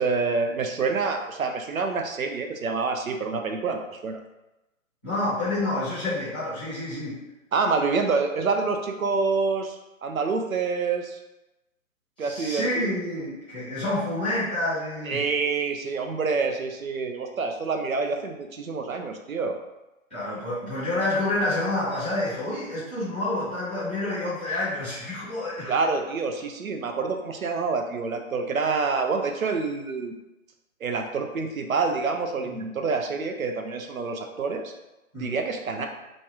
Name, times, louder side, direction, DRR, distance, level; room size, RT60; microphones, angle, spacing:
voice 1, 0.0-4.2 7.5-11.2 12.2-12.9 15.0-19.6 25.7-30.1 30.8-34.7 35.2-35.9, right 4 dB, 80° right, 5 dB, 0.6 m, -27 dB
voice 2, 5.0-7.2 12.2-15.2 20.1-25.7 32.5-32.6 35.1-35.4, left 1 dB, 5° left, -15 dB, 0.6 m, -28 dB
3.0 x 2.4 x 2.7 m, 0.99 s
figure-of-eight pair, 140°, 41 cm